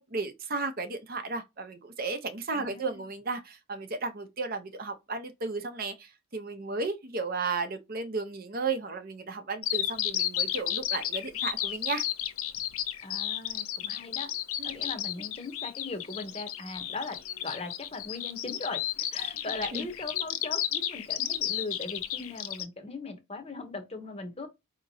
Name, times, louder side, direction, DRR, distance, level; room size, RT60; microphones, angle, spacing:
voice 1, 0.0-12.0 14.6-14.8 19.7-19.9, right 3 dB, 40° right, 0.7 m, -34 dB
voice 2, 2.5-3.0 13.0-14.3 14.6-24.5, left 3 dB, 25° left, 0.8 m, -39 dB
Bird vocalization bird call bird song, 9.6-22.6, left 11 dB, 80° left, 0.6 m, -32 dB
4.9 x 2.9 x 2.7 m
head